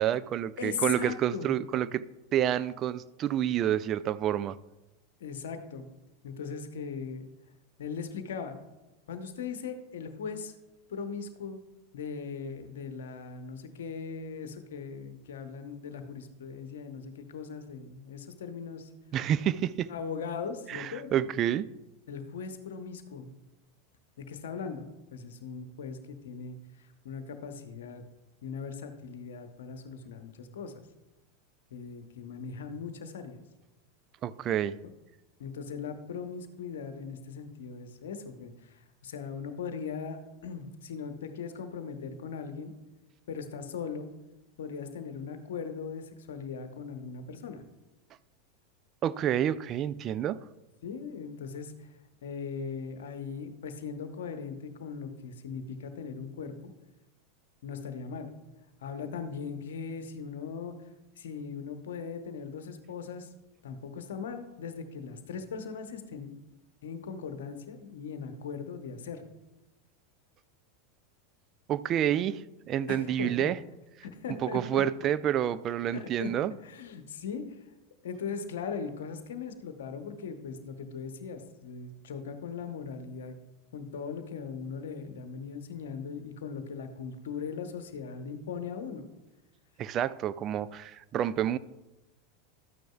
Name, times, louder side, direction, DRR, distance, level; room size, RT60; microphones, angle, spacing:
voice 1, 0.0-2.0 2.3-4.6 19.1-19.9 20.7-21.7 34.2-34.8 49.0-50.4 71.7-73.6 74.4-76.5 89.8-91.6, right 10 dB, 35° right, 16 dB, 0.3 m, -29 dB
voice 2, 0.6-1.5 5.2-5.9 6.2-7.2 7.8-8.6 9.1-10.5 10.9-11.6 11.9-18.9 19.9-21.3 22.1-23.3 24.2-28.0 28.4-30.7 31.7-33.4 35.4-42.7 43.3-44.1 44.6-47.6 50.8-51.9 52.2-56.7 57.6-58.3 58.8-60.7 61.2-63.3 63.6-66.3 66.8-69.2 72.9-73.5 74.0-74.8 75.9-76.3 76.6-77.4 78.0-83.4 83.7-89.0, left 6 dB, 65° left, 8 dB, 0.9 m, -39 dB
12.5 x 9.0 x 2.3 m, 1.0 s
figure-of-eight pair, 85°, 0 cm